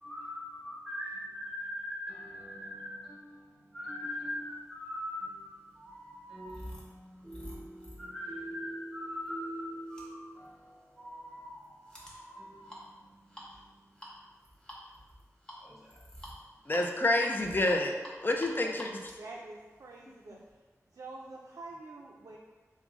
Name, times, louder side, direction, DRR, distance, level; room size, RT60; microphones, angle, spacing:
voice 1, 0.0-14.3 15.6-16.0, equal, 5° right, -6 dB, 1.1 m, -42 dB
sound 1, 4.8-20.5, equal, 15° left, 0.8 m, -51 dB
voice 2, 16.7-18.0 18.2-18.9, left 1 dB, 35° left, 2 dB, 0.4 m, -28 dB
voice 3, 19.2-20.4 20.9-22.4, right 2 dB, 85° right, -3 dB, 0.3 m, -46 dB
3.7 x 2.0 x 3.5 m, 1.3 s
wide cardioid pair, 75°, 6 cm